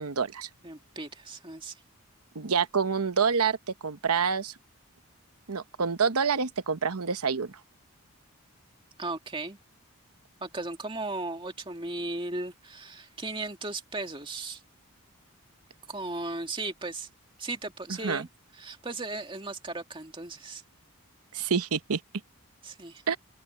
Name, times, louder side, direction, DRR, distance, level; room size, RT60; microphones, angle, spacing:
voice 1, 0.0-0.5 2.3-3.6 3.8-4.5 5.5-7.5 18.0-18.3 21.3-22.0 23.1-23.2, right 6 dB, 80° right, 1.0 m, -27 dB
voice 2, 0.6-1.8 9.0-9.6 10.4-14.6 15.9-17.1 17.4-18.3 18.5-20.6 22.6-23.0, right 2 dB, 20° right, 2.3 m, -36 dB
open air
head